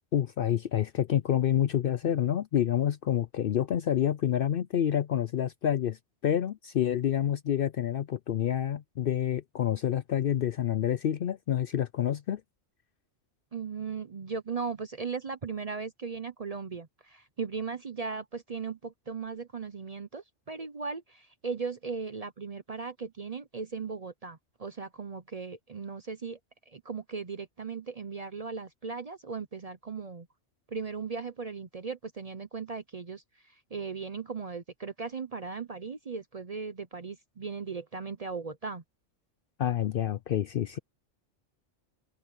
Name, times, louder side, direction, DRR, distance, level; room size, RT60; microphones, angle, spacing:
voice 1, 0.1-12.4 39.6-40.8, left 10 dB, 60° left, 0.6 m, -28 dB
voice 2, 13.5-26.4 26.7-30.3 30.7-33.2 33.7-38.8, right 5 dB, 40° right, 0.6 m, -37 dB
open air
omnidirectional pair, 1.3 m